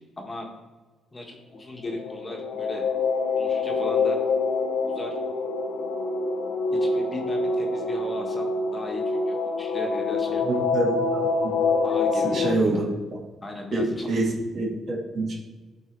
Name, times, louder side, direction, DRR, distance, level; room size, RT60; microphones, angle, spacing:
voice 1, 0.2-0.5 1.1-2.8 3.3-4.2 4.8-5.2 6.7-10.4 11.8-12.8 13.4-14.2, left 1 dB, 25° left, 1 dB, 1.6 m, -36 dB
sound 1, 1.9-12.5, left 3 dB, 85° left, 0.8 m, -26 dB
voice 2, 10.4-11.3 12.2-12.8 13.7-15.3, right 2 dB, 60° right, -3 dB, 2.4 m, -26 dB
11.5 x 4.1 x 4.7 m, 1.2 s
cardioid pair, 90°, 0 cm